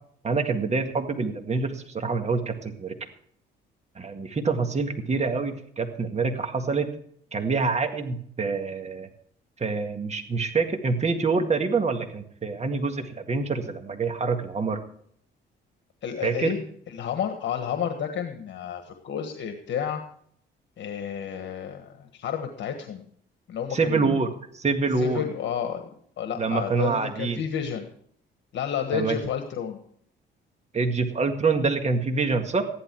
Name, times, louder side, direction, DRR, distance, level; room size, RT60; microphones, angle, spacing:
voice 1, 0.2-3.0 4.0-6.9 7.3-9.1 9.6-14.8 16.2-16.5 23.7-25.2 26.4-27.4 28.9-29.2 30.7-32.6, right 4 dB, 35° right, 6 dB, 1.9 m, -26 dB
voice 2, 16.0-16.6 16.9-20.0 20.8-23.1 23.5-24.2 25.0-25.8 26.2-27.8 28.5-29.8, left 8 dB, 65° left, 6 dB, 1.4 m, -31 dB
14.5 x 11.0 x 4.6 m, 0.63 s
cardioid pair, 90°, 20 cm